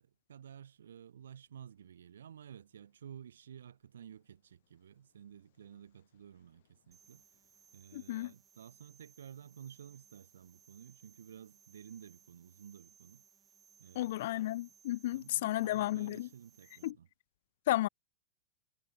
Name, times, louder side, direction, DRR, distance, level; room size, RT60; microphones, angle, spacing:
voice 1, 0.0-7.2 7.7-13.2 13.8-14.5 15.1-17.1, right 9 dB, 65° right, 4.1 m, -53 dB
sound 1, 6.9-16.9, right 7 dB, 20° right, 2.6 m, -64 dB
voice 2, 7.9-8.3 14.0-16.3 16.8-16.9 17.7-17.9, left 15 dB, 55° left, 0.5 m, -33 dB
figure-of-eight pair, 90°, 0 cm